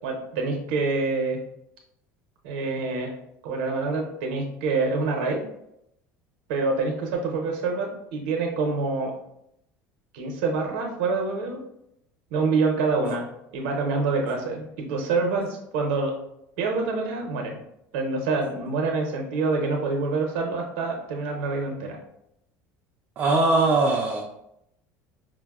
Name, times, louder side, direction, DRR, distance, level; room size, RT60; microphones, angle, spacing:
voice 1, 0.0-1.4 2.4-3.1 3.4-5.4 6.5-9.1 10.1-11.6 12.3-13.3 13.5-16.1 16.6-17.6 17.9-22.0, right 3 dB, 85° right, 1 dB, 0.6 m, -26 dB
voice 2, 23.2-24.2, right 3 dB, 30° right, -2 dB, 0.4 m, -21 dB
4.6 x 2.0 x 2.3 m, 0.79 s
cardioid pair, 170°, 6 cm